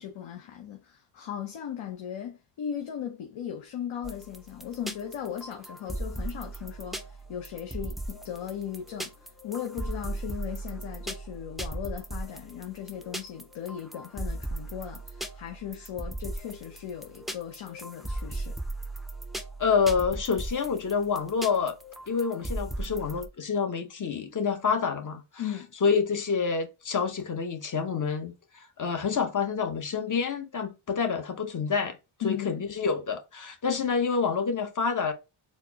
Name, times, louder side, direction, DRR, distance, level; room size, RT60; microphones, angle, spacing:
voice 1, 0.0-18.6 25.4-25.7 32.2-32.6, left 9 dB, 70° left, 0.8 m, -37 dB
Sparkling ending, 4.0-23.3, right 1 dB, ahead, 0.3 m, -38 dB
voice 2, 19.6-21.7 22.1-25.4 25.8-32.0 32.2-35.1, left 5 dB, 40° left, 0.8 m, -28 dB
4.2 x 2.0 x 3.4 m
cardioid pair, 75°, 49 cm